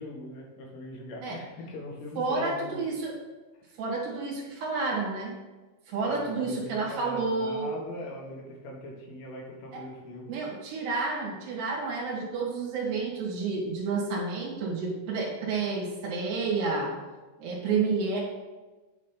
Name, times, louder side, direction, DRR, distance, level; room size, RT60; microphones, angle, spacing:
voice 1, 0.0-2.8 6.0-10.3, left 1 dB, 90° left, -1 dB, 3.8 m, -41 dB
voice 2, 2.2-3.2 3.8-5.4 5.9-7.7 9.7-9.8 10.3-17.0 17.4-18.2, right 4 dB, 65° right, -3 dB, 3.4 m, -30 dB
8.6 x 3.2 x 5.7 m, 1.2 s
omnidirectional pair, 5.4 m